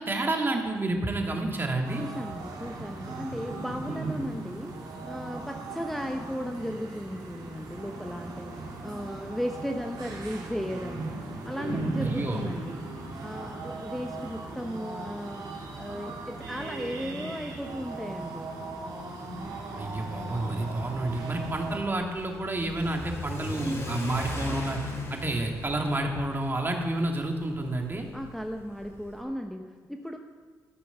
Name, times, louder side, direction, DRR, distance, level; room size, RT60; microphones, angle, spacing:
voice 1, 0.0-2.0 12.0-12.4 19.8-24.8 25.1-28.1, right 2 dB, 30° right, 2 dB, 2.0 m, -30 dB
voice 2, 1.8-12.9 13.2-15.5 15.8-18.6 28.1-30.2, equal, ahead, 3 dB, 0.9 m, -36 dB
sound 1, 1.8-21.8, right 2 dB, 70° right, 2.2 m, -38 dB
Car / Accelerating revving vroom, 19.8-29.2, left 1 dB, 40° left, 3.3 m, -38 dB
13.5 x 6.3 x 5.7 m, 1.5 s
supercardioid pair, 60°, 7 cm